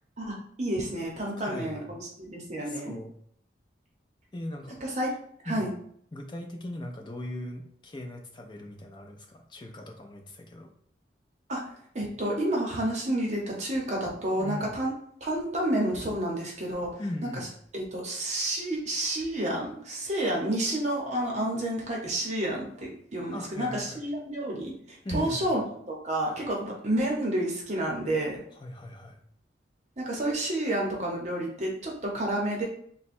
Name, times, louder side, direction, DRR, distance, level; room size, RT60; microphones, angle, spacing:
voice 1, 0.2-2.9 4.8-5.1 5.4-5.7 11.5-11.6 11.9-14.9 15.2-17.0 17.3-17.4 17.7-25.6 25.9-28.4 30.0-32.6, right 1 dB, 40° right, -2 dB, 0.8 m, -30 dB
voice 2, 1.4-1.9 2.6-3.1 4.3-4.8 5.5-5.7 6.1-10.7 14.4-14.7 17.0-17.5 23.3-24.0 25.0-25.6 28.6-29.2, left 1 dB, 25° left, 2 dB, 0.5 m, -39 dB
3.4 x 2.2 x 4.2 m, 0.63 s
head